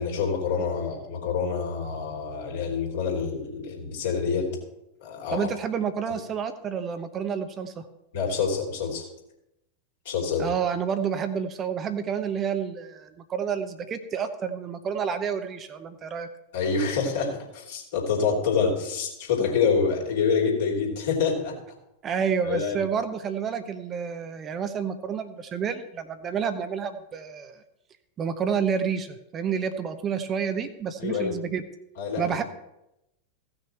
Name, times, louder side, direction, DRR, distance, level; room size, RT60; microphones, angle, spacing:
voice 1, 0.0-4.5 5.0-5.5 8.1-9.1 10.0-10.5 16.5-21.6 22.4-22.8 31.0-31.3 32.0-32.3, left 5 dB, 55° left, -2 dB, 3.0 m, -26 dB
voice 2, 5.3-7.9 10.4-16.3 22.0-27.6 28.2-31.6 32.2-32.4, right 7 dB, 25° right, 9 dB, 0.8 m, -29 dB
16.0 x 6.2 x 4.5 m, 0.87 s
figure-of-eight pair, 90°, 0 cm